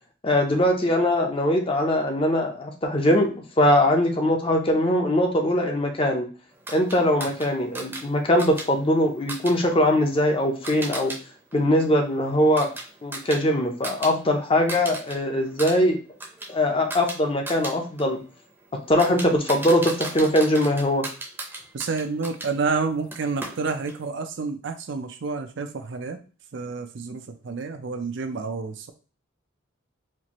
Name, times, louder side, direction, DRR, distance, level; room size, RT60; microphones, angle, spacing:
voice 1, 0.2-6.3 6.7-11.1 11.5-12.7 13.0-16.0 16.5-18.2 18.9-21.0, left 1 dB, 25° left, 3 dB, 0.6 m, -21 dB
sound 1, 6.7-11.2 11.5-14.1 14.4-15.1 15.5-22.5 23.1-24.0, right 2 dB, 10° right, 0.7 m, -37 dB
voice 2, 21.7-26.2 26.5-28.9, right 4 dB, 60° right, 7 dB, 0.5 m, -29 dB
4.4 x 2.5 x 3.0 m, 0.35 s
head